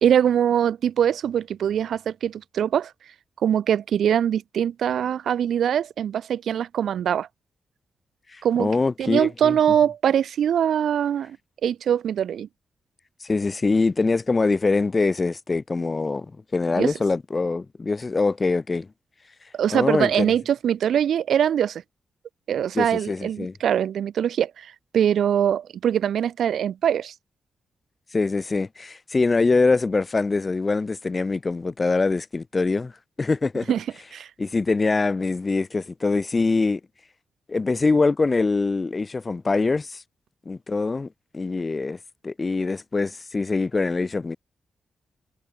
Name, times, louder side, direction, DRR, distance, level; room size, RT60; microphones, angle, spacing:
voice 1, 0.0-2.9 3.4-7.3 8.4-8.7 9.0-11.4 11.6-12.5 16.7-16.9 19.5-21.8 22.5-27.1 33.7-33.8 34.1-34.3, right 9 dB, 80° right, 1.3 m, -22 dB
voice 2, 8.3-9.6 13.2-18.9 19.7-20.3 22.7-23.5 28.1-32.9 33.2-33.7 34.4-36.8 37.5-40.0 40.5-41.1 41.3-42.0 42.2-44.4, left 3 dB, 25° left, 2.3 m, -23 dB
wide cardioid pair, 145°, 0 cm